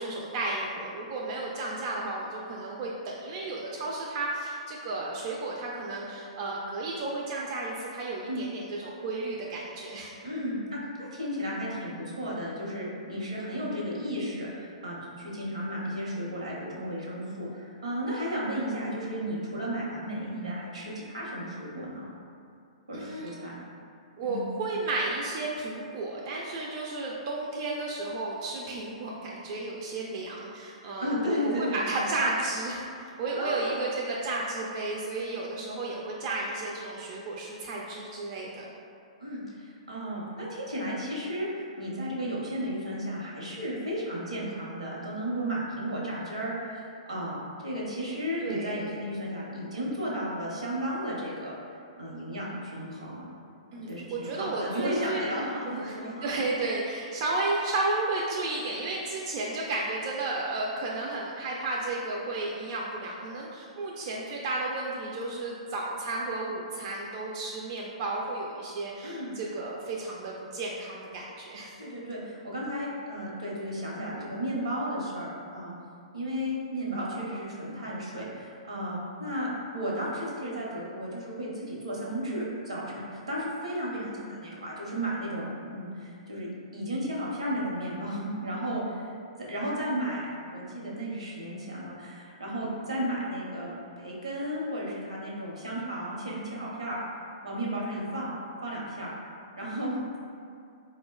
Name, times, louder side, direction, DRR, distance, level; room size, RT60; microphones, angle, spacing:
voice 1, 0.0-10.1 22.9-23.4 24.2-38.6 48.4-48.7 53.7-55.2 55.6-71.7 83.8-84.5, right 2 dB, 45° right, -3 dB, 0.3 m, -33 dB
voice 2, 10.2-22.1 22.9-23.5 24.2-24.5 31.0-32.1 33.3-33.8 39.2-47.4 47.6-51.5 52.0-53.3 53.7-56.4 69.0-69.3 71.8-75.7 76.1-79.5 79.7-86.5 86.7-89.1 89.5-90.3 90.5-97.0 97.4-98.3 98.6-99.1 99.6-100.2, equal, 85° right, -5 dB, 0.8 m, -34 dB
4.0 x 2.1 x 2.2 m, 2.4 s
hypercardioid pair, 115°, 3 cm